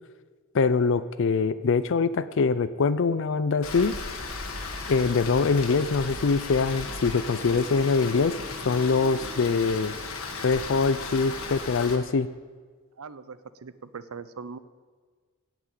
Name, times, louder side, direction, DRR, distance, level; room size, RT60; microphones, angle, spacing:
voice 1, 0.5-4.0 4.9-8.3 8.6-9.9 10.4-12.3, left 4 dB, 60° left, 14 dB, 0.4 m, -23 dB
Rain, 3.6-12.0, left 3 dB, 80° left, 1.6 m, -36 dB
voice 2, 13.0-14.6, right 5 dB, 90° right, 14 dB, 0.7 m, -41 dB
16.5 x 6.1 x 8.4 m, 1.5 s
head